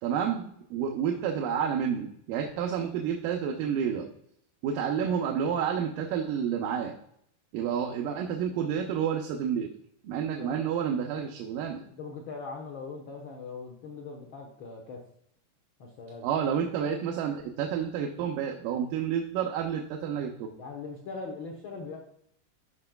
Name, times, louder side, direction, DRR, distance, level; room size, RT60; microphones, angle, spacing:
voice 1, 0.0-4.1 4.6-6.9 7.5-9.7 10.0-11.8 16.2-20.5, right 8 dB, 85° right, 2 dB, 2.4 m, -30 dB
voice 2, 11.9-15.0 15.8-16.3 20.6-22.0, left 4 dB, 70° left, -1 dB, 1.1 m, -40 dB
13.5 x 5.1 x 2.3 m, 0.70 s
omnidirectional pair, 3.8 m